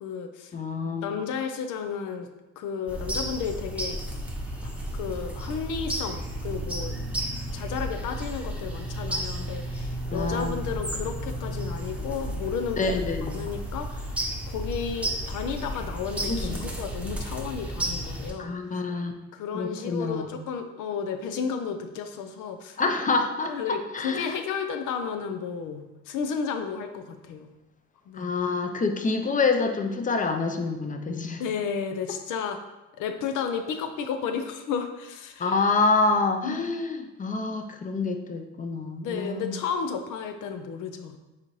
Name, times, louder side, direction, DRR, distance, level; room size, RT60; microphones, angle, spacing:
voice 1, 0.0-0.5 1.0-2.3 2.6-4.0 4.9-7.0 7.5-13.0 13.3-14.2 14.5-18.6 19.3-22.8 23.5-27.5 28.1-28.3 31.4-32.6 33.0-35.6 36.4-36.6 39.0-41.2, left 6 dB, 85° left, 7 dB, 0.6 m, -32 dB
voice 2, 0.5-1.1 10.1-10.5 12.8-13.4 16.3-16.6 18.4-19.2 19.5-20.3 22.8-23.5 23.9-24.3 28.2-31.4 35.4-39.5, left 3 dB, 25° left, 5 dB, 0.5 m, -27 dB
sound 1, 2.9-18.3, right 1 dB, 5° right, 0.8 m, -33 dB
4.1 x 3.9 x 3.1 m, 1.0 s
cardioid pair, 90°, 30 cm